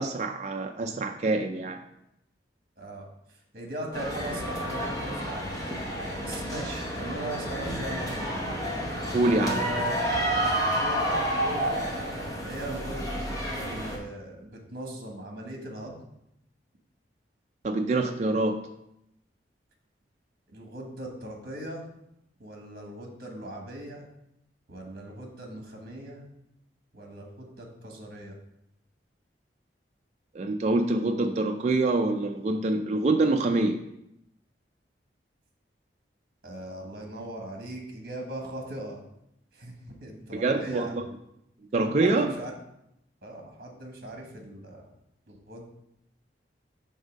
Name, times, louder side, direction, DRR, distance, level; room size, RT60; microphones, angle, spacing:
voice 1, 0.0-1.8 9.1-9.7 17.6-18.6 30.3-33.8 40.3-41.1 41.7-42.3, right 2 dB, 40° right, 4 dB, 0.3 m, -25 dB
voice 2, 3.5-5.6 6.2-8.5 9.4-10.0 10.8-11.9 12.4-13.0 13.5-16.0 20.5-21.8 22.4-24.1 24.7-26.2 26.9-28.3 36.4-39.0 39.5-39.7 40.0-41.0 42.0-42.5 43.2-44.9 45.3-45.7, right 1 dB, 55° right, 1 dB, 1.2 m, -39 dB
sound 1, 3.9-14.0, equal, 20° left, 1.0 m, -30 dB
5.4 x 3.6 x 5.2 m, 0.81 s
head